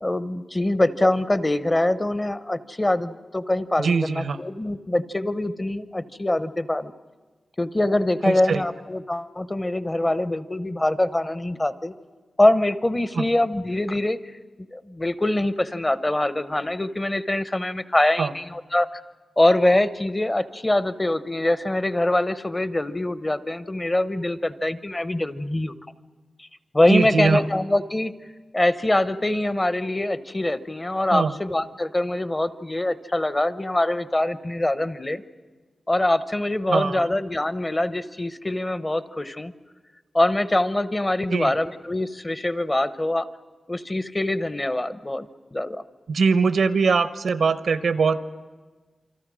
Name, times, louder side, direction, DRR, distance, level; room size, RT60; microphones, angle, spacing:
voice 1, 0.0-6.9 7.6-11.9 12.4-14.2 14.6-19.0 19.4-25.7 26.4-26.5 26.7-28.1 28.5-35.2 35.9-39.5 40.1-43.3 43.7-45.8, left 1 dB, 20° left, 13 dB, 0.7 m, -24 dB
voice 2, 3.8-4.4 8.2-8.6 13.2-13.3 18.2-18.3 26.9-27.5 31.1-31.3 36.7-37.0 41.3-41.5 46.1-48.2, right 5 dB, 85° right, 12 dB, 0.9 m, -22 dB
27.5 x 25.0 x 6.2 m, 1.3 s
wide cardioid pair, 120°, 0 cm